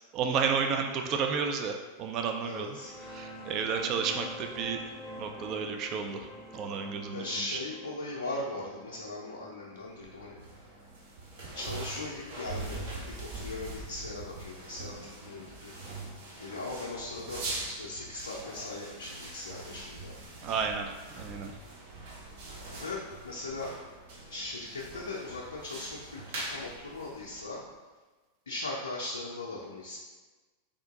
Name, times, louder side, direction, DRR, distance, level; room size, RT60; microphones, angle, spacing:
voice 1, 0.1-2.8 3.1-4.8 5.2-6.3 6.5-7.3 20.4-21.5, right 6 dB, 40° right, 4 dB, 0.3 m, -31 dB
voice 2, 2.4-2.9 6.8-10.4 11.5-15.7 16.4-20.2 22.7-23.7 24.3-27.6 28.5-30.0, left 2 dB, 70° left, -4 dB, 0.5 m, -39 dB
sound 1, 2.5-11.8, left 1 dB, 25° left, 0.6 m, -47 dB
sound 2, 9.9-27.7, right 2 dB, 55° right, 0.8 m, -43 dB
3.6 x 2.5 x 3.7 m, 1.3 s
figure-of-eight pair, 90°, 0 cm